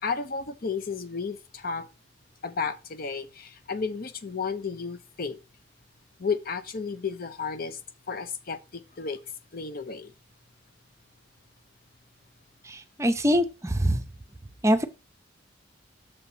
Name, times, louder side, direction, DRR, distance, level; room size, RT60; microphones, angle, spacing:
voice 1, 0.0-1.9 2.4-5.4 6.2-7.8 8.1-9.2 9.5-10.1, left 5 dB, 50° left, 0.7 m, -32 dB
voice 2, 12.6-14.0 14.6-14.8, equal, 15° right, 0.6 m, -24 dB
6.8 x 4.1 x 5.7 m
head